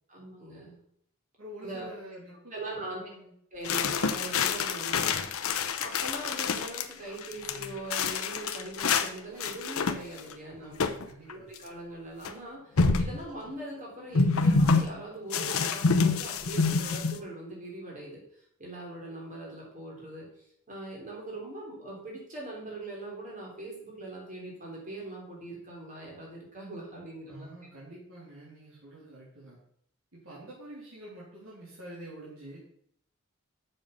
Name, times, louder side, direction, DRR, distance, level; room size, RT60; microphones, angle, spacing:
voice 1, 0.1-0.8 1.6-1.9 2.5-3.0 3.5-10.8 11.3-20.3 20.7-27.5, right 2 dB, 35° right, -2 dB, 3.5 m, -41 dB
voice 2, 1.4-3.3 10.6-11.5 27.3-29.6 30.1-32.6, right 1 dB, 70° right, -8 dB, 3.2 m, -47 dB
sound 1, 3.6-6.8 7.2-9.1 9.4-10.3 10.8-11.0 11.3-11.4 12.3-12.4 12.8-13.2 14.1-14.8 15.3-17.2, left 4 dB, 85° left, 0.8 m, -27 dB
7.5 x 6.6 x 5.3 m, 0.70 s
head